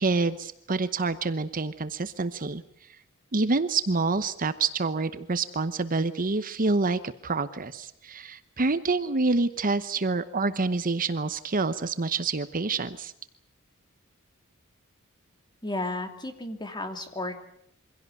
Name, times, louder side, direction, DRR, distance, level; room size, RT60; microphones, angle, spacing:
voice 1, 0.0-2.6 3.3-13.1, right 3 dB, 40° right, 12 dB, 0.9 m, -27 dB
voice 2, 15.6-17.4, left 2 dB, 20° left, 6 dB, 2.7 m, -33 dB
24.0 x 16.5 x 9.3 m, 0.72 s
head